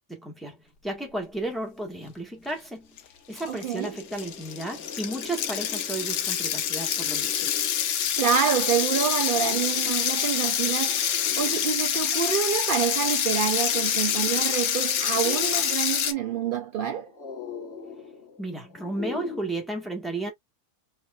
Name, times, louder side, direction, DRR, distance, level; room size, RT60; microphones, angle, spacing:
voice 1, 0.1-0.6 0.8-2.9 3.3-7.5 18.4-20.3, right 2 dB, ahead, 1.4 m, -33 dB
sound 1, 2.8-2.9 3.2-19.4, left 6 dB, 50° left, 1.3 m, -43 dB
sound 2, 3.0-3.1 3.4-16.1, left 9 dB, 80° left, 1.2 m, -26 dB
voice 2, 3.5-3.9 8.2-17.1, right 8 dB, 70° right, 0.5 m, -27 dB
4.5 x 3.2 x 2.4 m
omnidirectional pair, 1.5 m